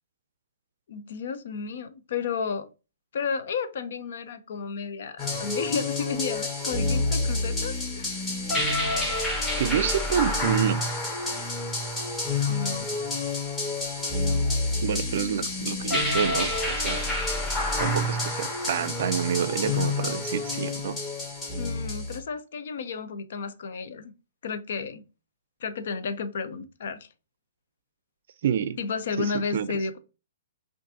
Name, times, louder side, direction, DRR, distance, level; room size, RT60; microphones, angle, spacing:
voice 1, 0.9-2.7 3.1-8.2 12.4-13.0 21.6-24.1 24.4-25.0 25.6-27.1 28.8-30.0, left 5 dB, 65° left, 0.6 m, -32 dB
sound 1, 5.2-22.2, left 2 dB, 20° left, 1.3 m, -28 dB
voice 2, 9.6-10.8 14.8-17.0 17.8-21.0 28.4-28.8 29.2-29.7, right 8 dB, 60° right, 0.4 m, -28 dB
5.9 x 2.6 x 2.7 m
hypercardioid pair, 125°, 0 cm